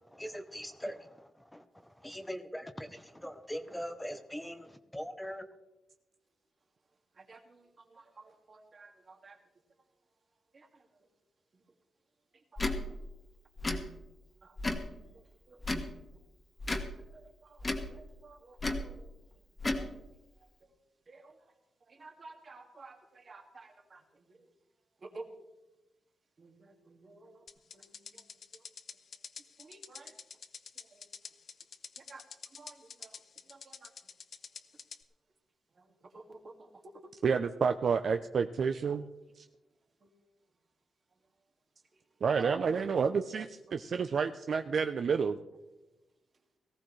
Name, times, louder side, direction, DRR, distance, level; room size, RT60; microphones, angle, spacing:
voice 1, 0.1-1.0 1.5-1.6 2.0-5.4, equal, 5° left, 8 dB, 0.8 m, -41 dB
voice 2, 7.1-9.4 10.5-11.1 11.5-11.6 12.3-13.0 14.4-15.6 16.8-19.4 19.7-19.9 20.4-20.7 21.1-21.5 21.9-24.4 25.0-25.3 26.4-27.5 27.7-28.3 28.5-28.6 29.6-30.2 30.8-31.1 32.0-32.3 32.5-33.9 35.7-37.0 40.0-40.1 41.9-42.0 42.4-43.0 43.7-43.8, right 3 dB, 45° right, 3 dB, 2.1 m, -52 dB
Tick / Tick-tock, 12.6-12.8 13.6-13.8 14.6-14.9 15.6-15.9 16.6-16.9 17.6-17.9 18.6-18.9 19.6-19.8, left 2 dB, 25° left, 1.6 m, -32 dB
sound 1, 27.5-35.0, left 6 dB, 60° left, 0.8 m, -48 dB
voice 3, 37.2-39.0 39.4-39.5 42.2-45.4, right 6 dB, 60° right, 8 dB, 0.5 m, -29 dB
18.5 x 15.0 x 3.2 m, 1.0 s
cardioid pair, 100°, 0 cm